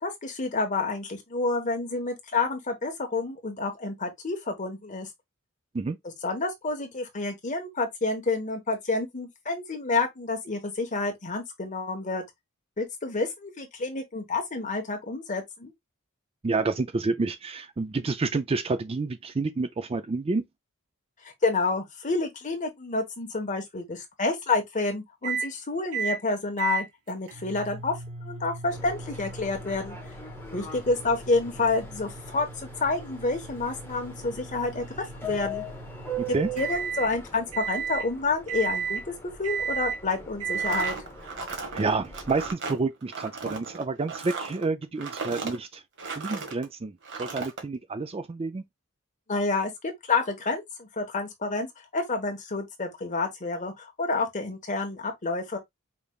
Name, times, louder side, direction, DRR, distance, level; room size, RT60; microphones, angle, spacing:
voice 1, 0.0-5.1 6.2-12.2 12.8-15.7 21.2-27.9 28.2-30.0 30.5-34.8 35.1-35.6 36.3-39.1 39.4-40.9 49.3-49.7 50.1-51.7 51.9-55.6, left 3 dB, 35° left, 1.3 m, -29 dB
voice 2, 16.4-20.4 36.2-36.5 41.7-45.8 46.2-48.6, right 3 dB, 25° right, 0.4 m, -29 dB
sound 1, 25.2-25.5 25.9-26.2 26.6-37.1 37.5-38.1 38.5-39.0 39.4-40.0 40.4-40.9, right 6 dB, 90° right, 1.4 m, -35 dB
Subway metro underground, 28.7-42.5, right 1 dB, 10° left, 1.1 m, -41 dB
sound 2, 40.5-46.6 47.0-47.6, right 4 dB, 60° right, 1.2 m, -36 dB
5.1 x 3.3 x 2.4 m
head